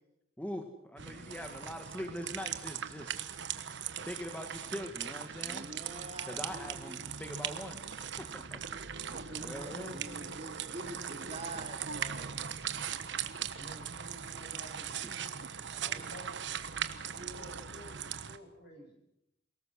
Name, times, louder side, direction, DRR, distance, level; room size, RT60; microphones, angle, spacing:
voice 1, 0.4-3.2 4.1-5.7 6.3-8.6 9.4-10.0 15.0-15.1 15.8-16.1, equal, 10° left, 4 dB, 1.8 m, -43 dB
voice 2, 1.0-1.7 9.0-11.6 13.5-16.6 17.1-19.1, equal, 55° left, 3 dB, 7.4 m, -52 dB
sound 1, 1.0-18.4, right 8 dB, 65° right, 1.3 m, -40 dB
voice 3, 5.4-7.1 9.0-12.5, right 2 dB, 35° right, 5 dB, 2.6 m, -46 dB
28.0 x 18.5 x 6.4 m, 0.81 s
head